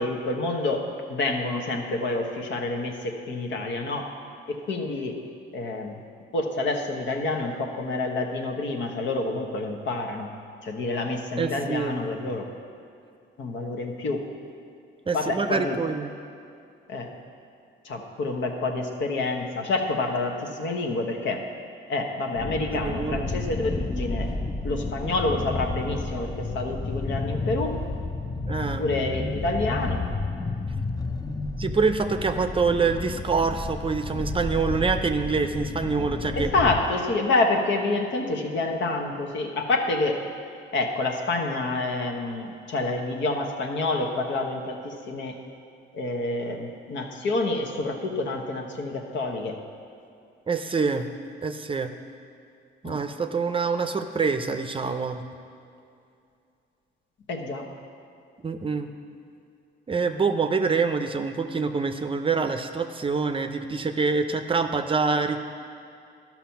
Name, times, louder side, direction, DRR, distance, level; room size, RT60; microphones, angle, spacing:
voice 1, 0.0-4.1 4.5-5.2 5.5-6.0 6.3-10.3 10.6-12.5 13.4-14.3 15.1-15.8 16.9-17.1 17.8-21.4 21.9-24.3 24.6-27.8 28.8-30.1 36.3-40.2 40.7-45.4 45.9-49.6 52.8-53.0 57.3-57.7, left 2 dB, 70° left, 3 dB, 1.2 m, -28 dB
voice 2, 11.4-12.1 15.1-16.1 22.8-23.3 28.5-28.8 31.6-36.5 50.5-51.1 51.4-51.9 52.8-55.2 58.4-58.9 59.9-65.4, right 4 dB, 25° right, 7 dB, 0.6 m, -26 dB
sound 1, 22.3-36.8, left 3 dB, 20° left, 0.6 m, -31 dB
12.5 x 5.9 x 5.8 m, 2.5 s
cardioid pair, 90°, 20 cm